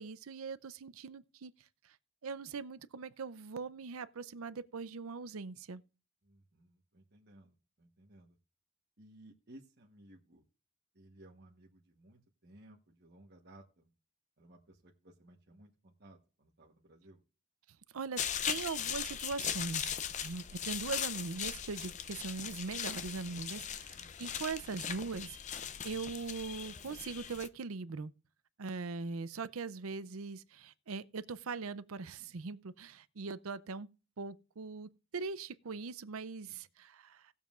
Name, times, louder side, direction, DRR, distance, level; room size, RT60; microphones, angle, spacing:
voice 1, 0.0-1.5 2.2-5.8 17.9-18.2 18.5-19.9 20.2-28.1 28.6-33.9 34.2-37.3, right 4 dB, 80° right, 0.6 m, -41 dB
voice 2, 6.2-8.4 9.0-10.4 10.9-13.9 14.4-17.2 23.3-23.8 36.5-36.6, right 1 dB, 50° right, 1.2 m, -59 dB
sound 1, 18.2-27.5, left 8 dB, 35° left, 0.5 m, -39 dB
19.0 x 7.2 x 2.5 m
head